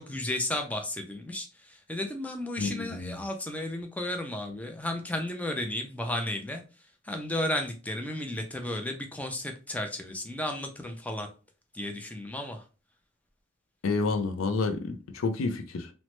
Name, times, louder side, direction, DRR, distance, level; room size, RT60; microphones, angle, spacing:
voice 1, 0.0-6.6 7.1-11.3 11.7-12.6, left 1 dB, 5° left, 0.4 m, -33 dB
voice 2, 2.6-3.2 13.8-15.9, left 3 dB, 80° left, 0.4 m, -29 dB
3.0 x 2.1 x 2.9 m
head